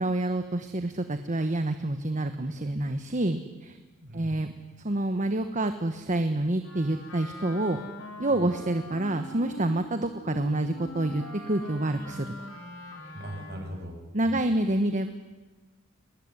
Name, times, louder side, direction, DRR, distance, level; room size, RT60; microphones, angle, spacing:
voice 1, 0.0-3.8 4.1-4.5 4.8-7.8 8.2-12.3 14.1-15.1, right 1 dB, 40° right, 8 dB, 1.2 m, -28 dB
voice 2, 4.0-4.5 8.3-8.5 13.1-14.4, equal, 55° right, 3 dB, 6.7 m, -40 dB
Wind instrument woodwind instrument, 6.6-13.8, left 1 dB, 75° left, 4.4 m, -42 dB
22.5 x 20.0 x 9.8 m, 1.2 s
head